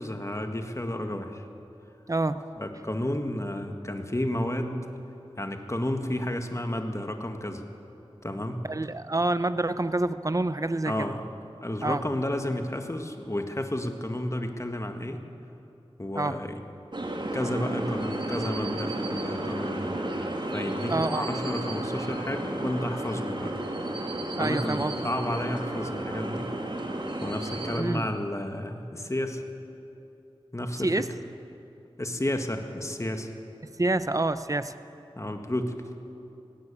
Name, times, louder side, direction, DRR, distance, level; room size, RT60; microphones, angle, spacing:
voice 1, 0.0-1.5 2.6-4.8 5.4-7.7 8.2-8.6 10.9-11.3 11.6-15.2 16.0-16.6 17.3-19.9 20.5-23.6 24.4-26.5 27.2-29.4 30.5-31.1 32.0-33.3 35.2-35.8, left 1 dB, 30° left, 5 dB, 1.8 m, -31 dB
voice 2, 2.1-2.4 8.7-11.1 11.8-12.0 16.2-16.4 20.9-21.2 24.4-24.9 27.8-28.1 30.8-31.1 33.8-34.7, right 2 dB, 35° right, 12 dB, 0.8 m, -27 dB
sound 1, 16.9-27.8, right 1 dB, 50° right, 2.5 m, -32 dB
18.0 x 17.0 x 8.5 m, 2.7 s
wide cardioid pair, 40°, 10 cm